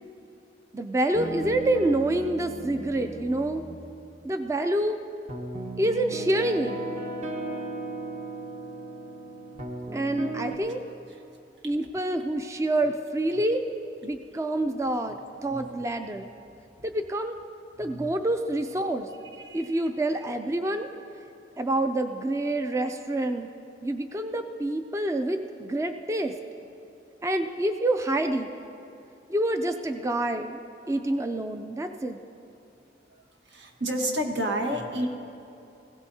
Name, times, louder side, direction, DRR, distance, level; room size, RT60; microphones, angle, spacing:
voice 1, 0.7-3.6 4.2-5.0 5.8-6.8 9.9-10.8 11.6-13.6 14.0-16.3 16.8-17.4 17.8-19.1 19.5-20.9 21.6-23.5 23.8-26.3 27.2-28.5 29.3-30.6 30.9-32.2, right 1 dB, 15° right, 7 dB, 0.4 m, -27 dB
sound 1, 1.1-4.1 5.3-10.5, right 2 dB, 40° right, 1.1 m, -36 dB
voice 2, 17.8-18.1 19.4-19.8 33.4-35.1, equal, 80° right, 2 dB, 1.5 m, -30 dB
19.5 x 16.5 x 2.8 m, 2.7 s
head